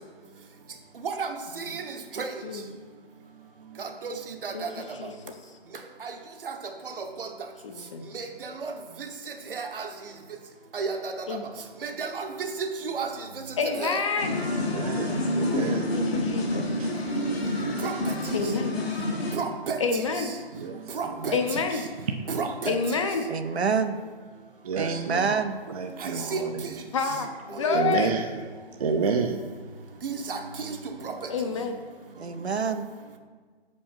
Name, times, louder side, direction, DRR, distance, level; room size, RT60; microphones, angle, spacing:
voice 1, 1.0-2.3 3.8-4.7 6.0-6.1 6.4-6.5 7.0-7.3 8.1-8.7 9.0-9.1 9.5-9.9 10.7-11.1 11.8-13.1 13.6-14.0 17.8-18.1 19.3-20.3 20.9-21.4 22.3-23.0 26.0-26.4 27.5-28.1 30.0-30.8 31.0-31.1, right 5 dB, 60° right, 5 dB, 1.1 m, -32 dB
voice 2, 5.0-5.3 7.6-8.0 11.3-11.4 13.6-14.4 15.9-16.8 18.3-18.7 19.8-20.3 21.3-21.9 22.7-23.3 26.9-28.1 31.3-31.8, left 5 dB, 30° left, 5 dB, 0.6 m, -28 dB
sound 1, 14.2-19.4, left 1 dB, 75° left, 2.1 m, -28 dB
voice 3, 14.6-16.0 16.8-16.9 20.5-21.3 22.1-22.4 24.6-26.7 27.1-27.2 27.7-28.5 28.8-29.5, right 5 dB, 35° right, 4 dB, 0.4 m, -30 dB
voice 4, 23.3-24.0 24.8-25.6 32.2-32.9, right 5 dB, 85° right, 9 dB, 0.8 m, -27 dB
6.9 x 5.2 x 5.2 m, 1.5 s
figure-of-eight pair, 140°, 32 cm